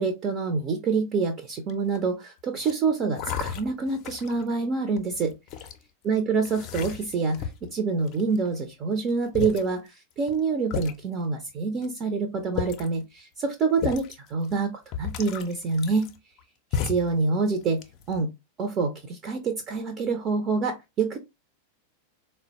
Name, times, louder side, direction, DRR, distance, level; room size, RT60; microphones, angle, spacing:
voice 1, 0.0-5.3 6.0-9.9 10.2-16.1 16.8-17.8 18.1-18.3 18.6-21.2, right 4 dB, 30° right, 6 dB, 0.5 m, -26 dB
sound 1, 1.7-2.1 2.6-2.7 3.2-4.4 5.0-5.8 6.4-7.7 8.1-8.6 9.1-9.2 9.3-9.7 10.3-10.4 10.7-10.9 11.8-11.9 12.4-13.0 13.8-14.1 14.5-14.6 14.9-16.4 16.7-17.2 17.6-18.2, left 7 dB, 40° left, 0.5 m, -33 dB
3.8 x 2.1 x 2.7 m, 0.22 s
figure-of-eight pair, 90°, 0 cm